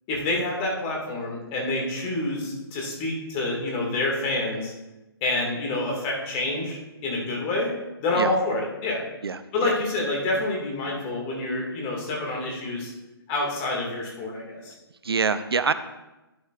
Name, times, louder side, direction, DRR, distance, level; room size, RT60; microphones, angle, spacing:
voice 1, 0.1-4.7 5.2-7.7 8.0-9.0 9.5-12.9 13.3-14.7, left 2 dB, 25° left, -1 dB, 2.1 m, -27 dB
voice 2, 9.2-9.8 15.0-15.7, right 5 dB, 75° right, 13 dB, 0.5 m, -25 dB
11.5 x 7.1 x 2.5 m, 1.0 s
figure-of-eight pair, 135°, 13 cm